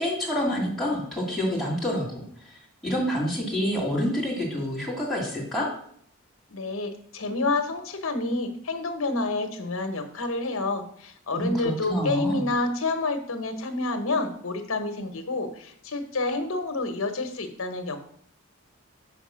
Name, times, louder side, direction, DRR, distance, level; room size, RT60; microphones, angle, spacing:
voice 1, 0.0-2.2 2.8-5.7 11.3-12.4, equal, ahead, -5 dB, 2.2 m, -27 dB
voice 2, 6.5-18.0, left 3 dB, 70° left, 7 dB, 1.0 m, -29 dB
5.6 x 5.1 x 6.2 m, 0.63 s
head